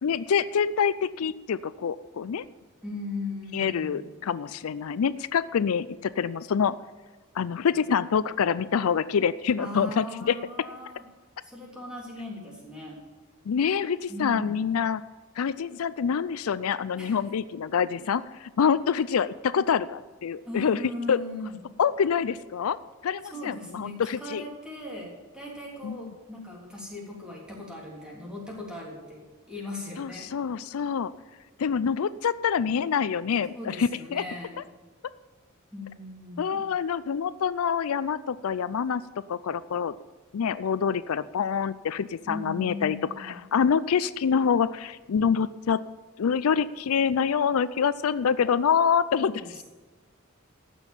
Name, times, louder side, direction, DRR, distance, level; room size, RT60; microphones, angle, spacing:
voice 1, 0.0-2.4 3.5-6.8 7.4-10.4 13.5-15.0 15.4-20.8 21.1-21.2 21.8-22.8 23.0-24.4 25.8-26.1 30.0-31.1 31.6-34.2 36.4-39.0 39.3-39.9 40.3-45.8 46.2-49.3, left 7 dB, 85° left, 16 dB, 0.4 m, -26 dB
voice 2, 2.8-4.0 9.6-11.0 11.4-13.0 14.1-14.6 17.0-17.2 20.4-21.6 23.3-30.3 33.5-34.6 35.7-36.6 42.2-43.4 49.2-49.6, left 2 dB, 5° right, -4 dB, 3.5 m, -38 dB
14.5 x 6.3 x 7.4 m, 1.3 s
head